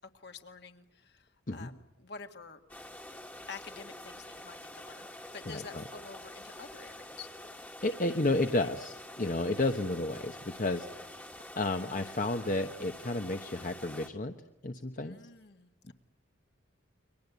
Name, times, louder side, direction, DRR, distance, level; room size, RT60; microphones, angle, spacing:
voice 1, 0.1-2.6 3.5-7.3 15.0-15.9, left 5 dB, 60° left, 6 dB, 2.0 m, -48 dB
sound 1, 2.7-14.1, left 1 dB, 10° left, 1.6 m, -47 dB
voice 2, 5.5-5.9 7.8-11.2 11.6-14.3 14.6-15.2 15.9-16.0, left 2 dB, 45° left, 6 dB, 1.1 m, -32 dB
30.0 x 23.5 x 8.2 m, 0.87 s
head